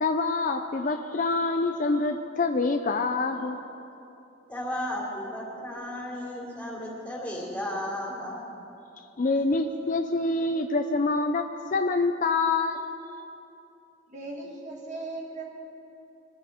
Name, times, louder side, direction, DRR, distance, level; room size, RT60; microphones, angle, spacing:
voice 1, 0.0-3.6 9.2-12.8, left 3 dB, 40° left, 5 dB, 0.5 m, -26 dB
voice 2, 4.5-8.4, left 1 dB, 5° left, -4 dB, 3.0 m, -34 dB
voice 3, 14.1-15.4, right 2 dB, 35° right, -2 dB, 2.1 m, -37 dB
23.0 x 14.0 x 3.6 m, 2.9 s
head